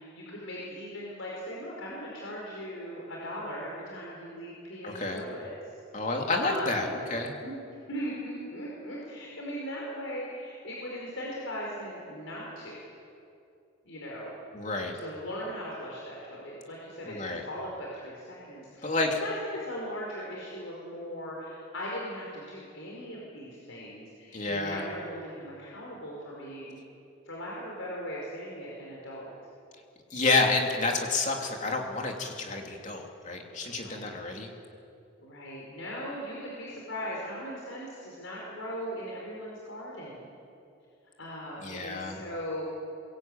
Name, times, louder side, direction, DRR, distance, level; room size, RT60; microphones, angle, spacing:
voice 1, 0.0-5.5 6.0-7.0 7.4-7.5 7.9-12.8 13.9-14.3 14.9-26.8 27.3-29.3 33.6-34.1 35.2-40.3 41.2-42.6, equal, 75° left, -4 dB, 5.2 m, -39 dB
voice 2, 4.8-5.2 5.9-7.3 14.5-15.0 17.0-17.5 18.8-19.2 24.3-24.9 30.1-34.5 41.6-42.2, left 3 dB, 35° left, 1 dB, 3.0 m, -29 dB
23.5 x 22.5 x 9.0 m, 2.6 s
head